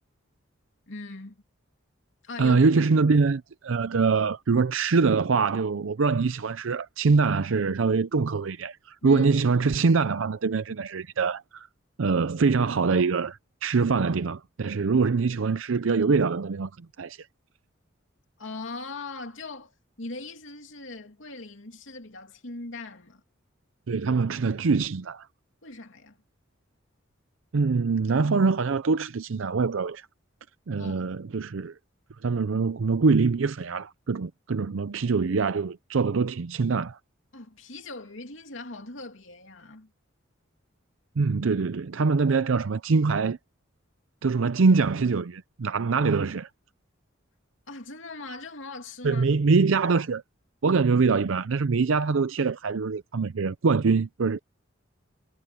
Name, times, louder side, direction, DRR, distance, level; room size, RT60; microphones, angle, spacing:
voice 1, 0.9-1.4 2.2-2.9 9.0-9.3 18.4-23.2 25.6-26.2 30.8-31.0 32.3-32.4 37.3-39.9 47.7-49.3, left 2 dB, 70° left, 2.9 m, -40 dB
voice 2, 2.4-11.7 12.0-16.7 17.0-17.3 23.9-25.3 27.5-30.1 30.7-31.7 32.2-37.0 41.2-43.4 44.2-46.5 49.0-50.2 50.6-54.4, right 4 dB, 75° right, 0.6 m, -24 dB
head